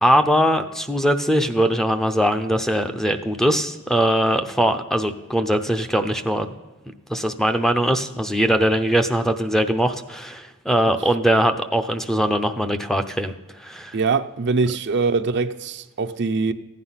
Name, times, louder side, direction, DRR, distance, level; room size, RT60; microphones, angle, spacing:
voice 1, 0.0-6.5 7.1-13.3 13.6-13.9, equal, ahead, 0.6 m, -21 dB
voice 2, 13.9-16.5, right 4 dB, 50° right, 0.6 m, -22 dB
15.0 x 9.5 x 5.7 m
head